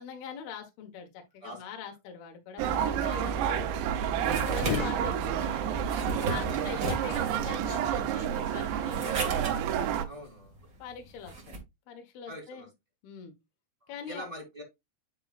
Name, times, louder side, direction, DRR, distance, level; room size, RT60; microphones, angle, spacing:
voice 1, 0.0-3.7 4.4-5.8 6.1-9.5 10.8-11.6 11.9-12.7 13.0-13.3 13.9-14.3, left 7 dB, 65° left, 3.0 m, -43 dB
sound 1, 2.6-10.1, right 9 dB, 80° right, 3.1 m, -29 dB
sound 2, 3.4-11.6, right 2 dB, 50° right, 1.0 m, -38 dB
Bullet whiz slowed, 4.6-5.8, left 14 dB, 85° left, 2.9 m, -36 dB
voice 2, 6.5-6.8 10.0-10.6 12.3-12.7 13.8-14.6, equal, 10° right, 3.1 m, -44 dB
10.0 x 4.8 x 2.4 m
omnidirectional pair, 5.1 m